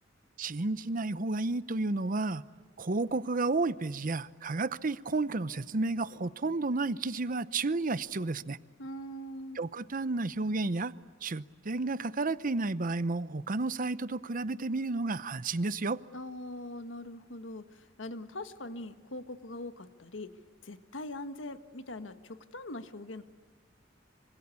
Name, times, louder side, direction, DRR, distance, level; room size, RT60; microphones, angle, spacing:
voice 1, 0.4-2.4 2.8-8.6 9.6-10.9 11.2-16.0, right 3 dB, 45° right, 0.8 m, -31 dB
voice 2, 8.8-9.6 16.1-20.3 20.6-23.2, left 1 dB, 85° left, 1.5 m, -42 dB
26.0 x 25.5 x 8.3 m
head